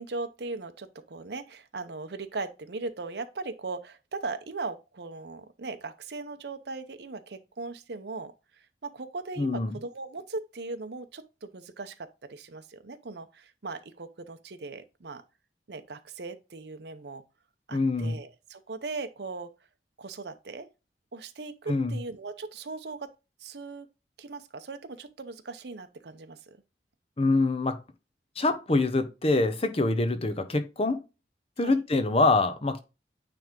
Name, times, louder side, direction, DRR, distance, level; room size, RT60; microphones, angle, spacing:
voice 1, 0.0-15.2 15.7-17.2 17.7-19.5 20.0-20.7 21.1-23.1 23.4-23.9 24.2-26.4 31.6-31.8, right 3 dB, 65° right, 0.7 m, -39 dB
voice 2, 9.4-9.8 17.7-18.2 21.7-22.0 27.2-27.8 28.4-31.0 31.6-32.8, left 2 dB, 35° left, 0.9 m, -25 dB
9.2 x 3.4 x 3.7 m
head